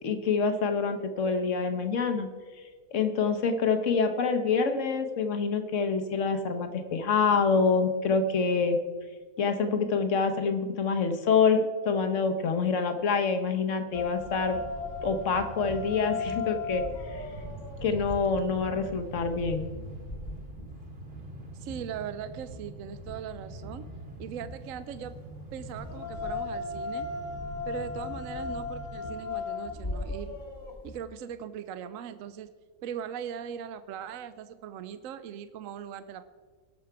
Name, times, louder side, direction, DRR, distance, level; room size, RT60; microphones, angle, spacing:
voice 1, 0.0-2.3 2.9-8.8 9.4-14.6 15.0-16.8 17.1-17.2 17.8-19.6, left 5 dB, 60° left, 7 dB, 1.2 m, -26 dB
sound 1, 13.9-31.0, left 3 dB, 35° left, 1.1 m, -38 dB
Train, 14.1-29.1, right 1 dB, 45° right, 1.4 m, -45 dB
voice 2, 21.6-23.8 24.2-25.2 25.5-27.1 27.7-30.3 30.8-32.5 32.8-36.2, right 9 dB, 70° right, 12 dB, 0.9 m, -39 dB
18.5 x 6.2 x 4.7 m, 1.5 s
omnidirectional pair, 1.6 m